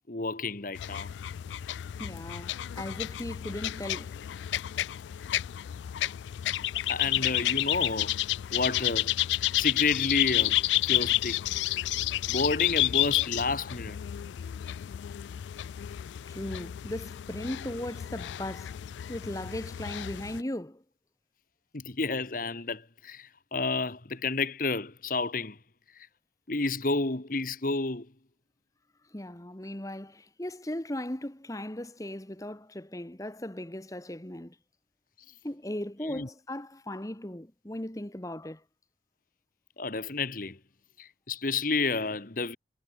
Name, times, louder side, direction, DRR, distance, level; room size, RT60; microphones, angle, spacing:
voice 1, 0.1-1.1 6.9-8.2 8.5-9.1 9.5-11.8 12.3-14.0 21.7-25.6 26.5-28.1 36.0-36.3 39.8-40.6 41.0-42.6, left 3 dB, 50° left, 1.4 m, -30 dB
sound 1, 0.8-20.4, left 14 dB, 85° left, 0.3 m, -31 dB
voice 2, 2.0-4.2 16.3-18.8 19.1-20.8 29.1-34.6 35.4-38.6, left 1 dB, 20° left, 1.2 m, -37 dB
head